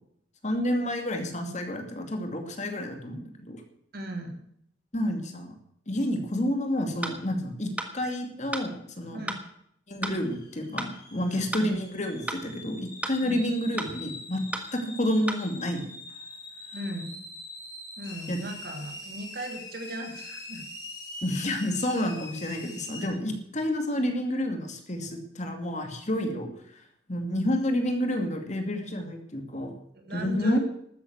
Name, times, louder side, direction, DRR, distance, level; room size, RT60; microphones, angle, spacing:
voice 1, 0.4-3.6 4.9-5.6 5.9-9.3 9.9-14.4 14.7-15.9 18.3-18.5 21.2-26.8 27.1-29.7 30.1-30.6, left 1 dB, 40° left, 5 dB, 2.4 m, -29 dB
voice 2, 3.9-4.4 9.1-9.4 11.2-11.4 13.2-13.4 16.7-17.2 18.0-20.6 23.0-23.1 29.9-30.6, equal, 55° right, 3 dB, 2.9 m, -37 dB
sound 1, 7.0-7.2 7.8-7.9 8.5-8.7 9.3-9.4 10.0-10.2 10.8-10.9 11.5-11.7 12.3-12.4 13.0-13.2 13.8-13.9 14.5-14.7 15.3-15.4, right 1 dB, 10° right, 1.6 m, -33 dB
sound 2, 10.2-23.1, left 2 dB, 25° left, 4.8 m, -43 dB
13.0 x 9.8 x 8.0 m, 0.71 s
head